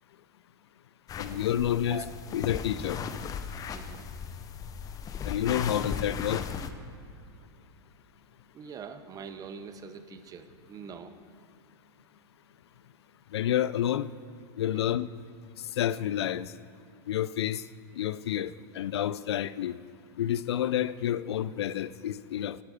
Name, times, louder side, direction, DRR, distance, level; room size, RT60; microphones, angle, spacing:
sound 1, 1.1-6.7, left 7 dB, 25° left, 0.7 m, -37 dB
voice 1, 1.2-2.0 2.3-3.0 5.2-6.4 13.3-14.1 14.6-15.1 15.8-16.5 17.1-17.6 17.9-19.8 20.2-22.6, left 11 dB, 80° left, 17 dB, 0.4 m, -29 dB
voice 2, 3.7-4.0 8.5-11.1 14.7-14.8, right 6 dB, 25° right, 10 dB, 0.8 m, -43 dB
11.0 x 10.0 x 5.1 m, 2.4 s
hypercardioid pair, 115°, 13 cm